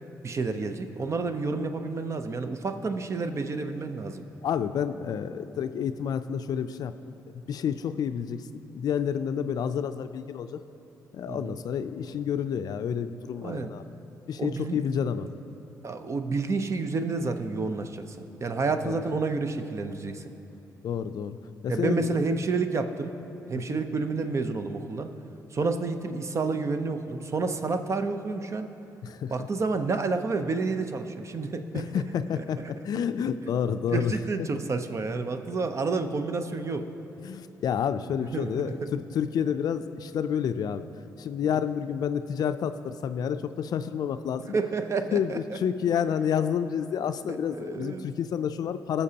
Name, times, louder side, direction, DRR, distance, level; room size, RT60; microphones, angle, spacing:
voice 1, 0.2-4.3 11.3-11.6 13.4-13.7 14.4-14.8 15.8-20.3 21.7-23.2 23.5-25.1 25.5-28.7 29.3-32.0 32.4-32.5 33.9-36.9 38.3-38.9 44.5-45.6 47.3-48.1, right 4 dB, 40° right, 8 dB, 0.7 m, -30 dB
voice 2, 4.4-8.5 8.7-10.6 11.1-13.9 14.3-15.3 18.8-19.0 20.8-21.4 21.6-22.1 23.7-23.8 29.0-29.3 31.7-34.1 37.2-40.9 41.2-44.6 45.1-49.0, left 8 dB, 65° left, 11 dB, 0.4 m, -29 dB
20.5 x 6.8 x 2.9 m, 2.8 s
supercardioid pair, 65°, 7 cm